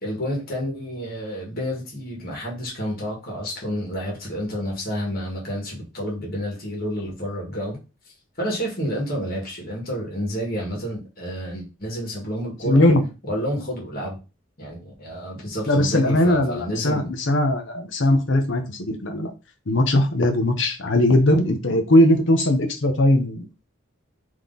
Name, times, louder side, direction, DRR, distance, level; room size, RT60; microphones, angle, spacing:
voice 1, 0.0-7.8 8.4-12.8 13.3-14.2 14.6-17.1, equal, 45° left, -2 dB, 1.7 m, -29 dB
voice 2, 12.6-13.0 15.7-19.3 19.7-23.5, left 1 dB, 60° left, 5 dB, 0.8 m, -19 dB
3.6 x 3.2 x 3.9 m, 0.30 s
head